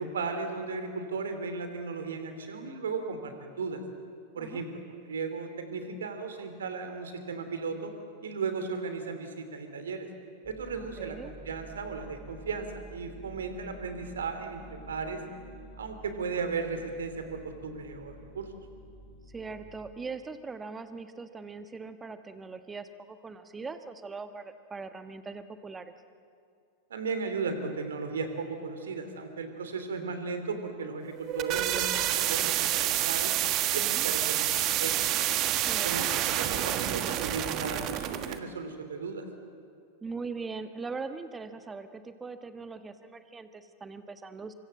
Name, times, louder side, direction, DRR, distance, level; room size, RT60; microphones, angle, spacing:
voice 1, 0.0-3.8 4.3-4.7 5.1-7.9 8.2-10.1 10.4-15.2 15.8-18.5 26.9-33.3 33.7-34.9 35.8-39.3, right 4 dB, 65° right, 7 dB, 3.0 m, -36 dB
sound 1, 10.4-19.9, right 1 dB, 15° left, 5.5 m, -50 dB
voice 2, 10.7-11.3 19.3-25.9 33.8-34.1 35.7-36.1 40.0-44.5, right 4 dB, 15° right, 10 dB, 1.4 m, -41 dB
sound 2, 31.1-38.4, right 12 dB, 35° right, 1.4 m, -28 dB
25.0 x 25.0 x 7.8 m, 2.4 s
figure-of-eight pair, 90°, 0 cm